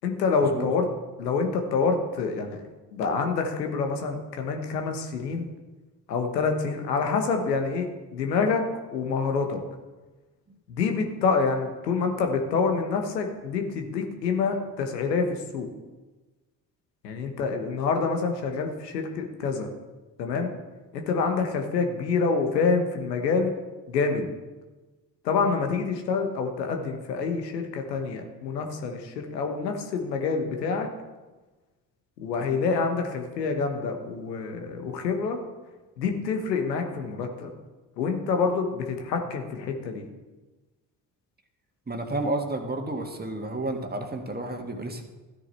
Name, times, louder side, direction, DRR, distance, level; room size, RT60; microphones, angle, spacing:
voice 1, 0.0-0.9 1.2-2.6 2.9-5.5 6.1-8.6 8.9-9.6 10.7-15.7 17.0-19.7 20.2-20.5 20.9-23.5 23.9-24.3 25.2-30.9 32.2-35.4 36.0-37.5 38.0-40.0, left 4 dB, 85° left, 5 dB, 1.2 m, -27 dB
voice 2, 41.9-45.0, right 2 dB, 20° right, 4 dB, 1.8 m, -31 dB
13.0 x 9.6 x 4.2 m, 1.2 s
hypercardioid pair, 50°, 48 cm